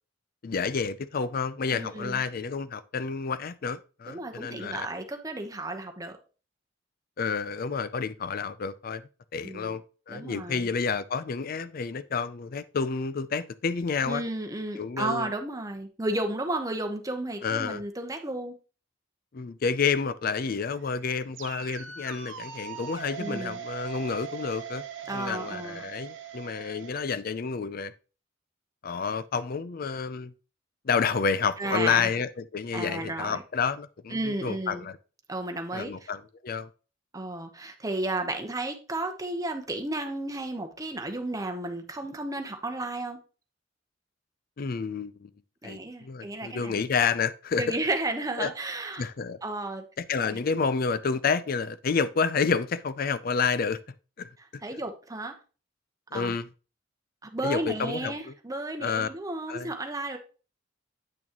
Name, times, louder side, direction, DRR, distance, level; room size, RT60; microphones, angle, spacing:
voice 1, 0.4-4.9 7.2-14.2 14.8-15.3 17.4-17.8 19.3-24.8 25.1-27.9 28.8-30.3 30.8-35.0 35.7-36.7 44.6-45.3 45.6-47.8 48.4-48.5 48.9-49.4 50.0-53.8 54.2-54.3 56.1-56.5 57.4-58.3 58.8-59.1 59.5-59.7, left 5 dB, 50° left, 0.5 m, -29 dB
voice 2, 1.7-2.2 4.1-6.2 9.4-9.8 10.1-10.7 14.0-18.5 23.2-23.6 25.1-25.9 31.6-32.1 32.7-33.4 34.1-34.8 35.3-36.1 37.1-43.2 45.6-46.8 47.6-49.1 49.4-49.8 50.2-50.4 54.6-55.3 56.1-56.4 57.2-60.2, right 2 dB, 20° right, 1.0 m, -33 dB
sound 1, 20.5-26.9, right 8 dB, 75° right, 1.0 m, -40 dB
8.7 x 6.2 x 3.0 m
head